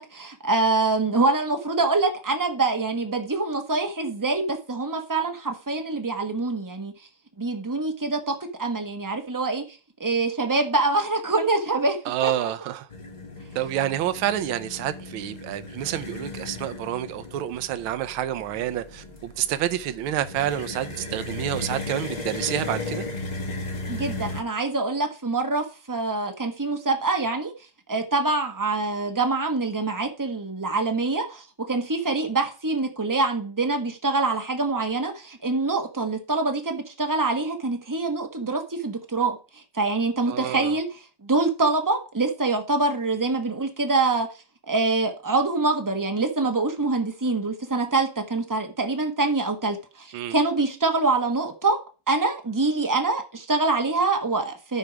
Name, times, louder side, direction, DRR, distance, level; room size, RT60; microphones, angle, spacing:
voice 1, 0.0-6.9 7.4-9.6 10.0-12.5 23.9-27.5 27.9-44.3 44.7-51.8 52.1-54.8, right 3 dB, 25° right, 0.4 m, -25 dB
voice 2, 12.1-12.9 13.5-23.0 40.3-40.8 50.1-50.4, right 12 dB, 80° right, 1.5 m, -28 dB
sound 1, 12.9-24.4, left 2 dB, 25° left, 1.1 m, -36 dB
12.0 x 4.6 x 5.0 m
omnidirectional pair, 2.3 m